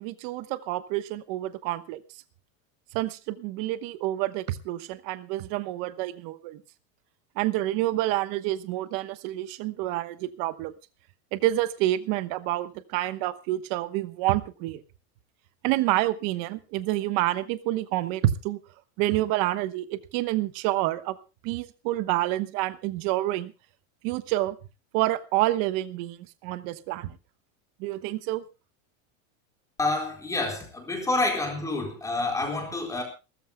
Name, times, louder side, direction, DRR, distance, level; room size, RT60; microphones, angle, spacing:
voice 1, 0.0-2.0 2.9-6.6 7.4-10.7 11.3-14.8 15.6-18.6 19.0-21.2 21.4-23.5 24.0-24.6 24.9-27.1 27.8-28.4, right 15 dB, 45° right, 1.1 m, -28 dB
voice 2, 29.8-33.0, left 2 dB, 10° left, 4.2 m, -28 dB
28.5 x 14.0 x 2.2 m
supercardioid pair, 175°, 40 cm